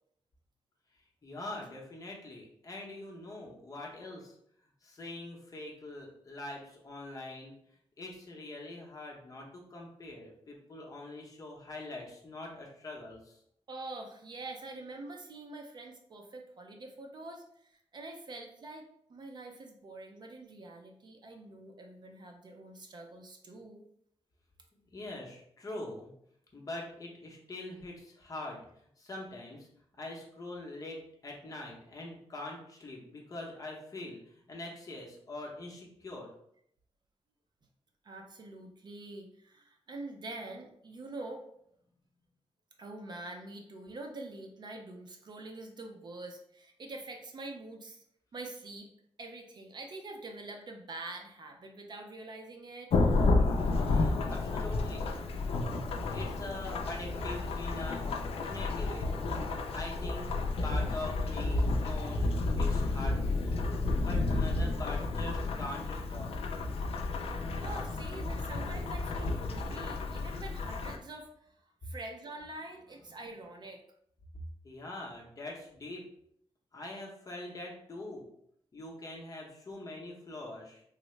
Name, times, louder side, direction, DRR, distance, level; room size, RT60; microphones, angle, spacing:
voice 1, 1.2-4.3 4.8-7.5 8.0-13.4 24.9-26.1 26.5-28.6 29.0-29.7 30.0-31.0 31.2-34.2 34.5-36.3 53.7-55.2 55.9-58.1 58.4-59.1 59.7-60.4 60.6-62.3 62.5-63.6 64.0-66.3 74.6-76.0 76.7-78.3 78.7-80.8, left 2 dB, 35° left, -2 dB, 0.7 m, -43 dB
voice 2, 13.7-23.8 38.0-41.4 42.8-48.0 48.3-48.9 49.2-52.9 67.5-73.8, right 2 dB, 45° right, 3 dB, 0.4 m, -45 dB
Thunderstorm / Rain, 52.9-71.0, left 3 dB, 65° left, 0.4 m, -31 dB
3.6 x 2.0 x 3.1 m, 0.70 s
wide cardioid pair, 165°, 11 cm